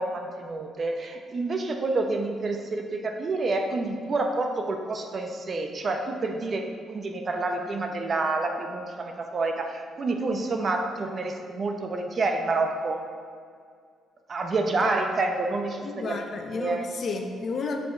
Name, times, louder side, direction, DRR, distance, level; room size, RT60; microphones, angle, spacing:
voice 1, 0.0-13.0 14.3-16.2 16.5-16.9, right 3 dB, 45° right, 4 dB, 0.7 m, -28 dB
voice 2, 15.8-17.8, left 4 dB, 50° left, 4 dB, 0.7 m, -32 dB
5.9 x 5.0 x 4.9 m, 2.2 s
cardioid pair, 90°, 0 cm